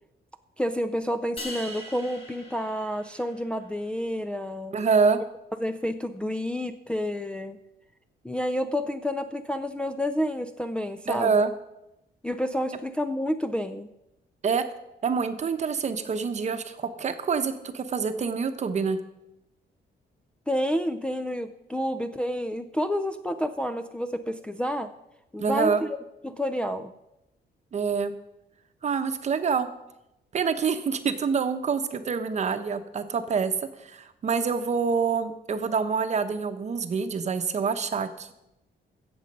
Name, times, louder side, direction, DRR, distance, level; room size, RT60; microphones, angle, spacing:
voice 1, 0.6-4.7 5.6-7.6 8.2-11.5 12.2-13.9 20.5-24.9 25.3-26.0 26.2-26.9, equal, 5° left, 4 dB, 0.5 m, -29 dB
sound 1, 1.4-3.7, left 1 dB, 35° left, 2.7 m, -41 dB
voice 2, 4.7-5.2 11.1-11.5 14.4-14.6 15.0-19.0 25.4-25.8 27.7-28.1 28.8-29.7 30.3-33.5 33.8-38.3, right 5 dB, 40° right, 9 dB, 0.9 m, -26 dB
16.0 x 7.2 x 5.3 m, 0.88 s
cardioid pair, 150°, 18 cm